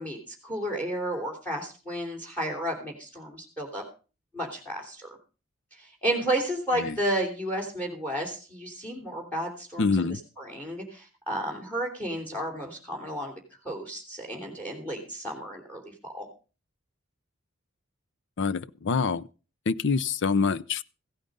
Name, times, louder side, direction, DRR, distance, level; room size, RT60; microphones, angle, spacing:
voice 1, 0.0-3.8 4.3-5.2 5.7-13.3 13.6-16.3, right 1 dB, 5° left, 3.1 m, -32 dB
voice 2, 9.8-10.2 18.4-19.3 19.7-20.8, left 4 dB, 60° left, 0.6 m, -26 dB
15.5 x 9.0 x 5.3 m
head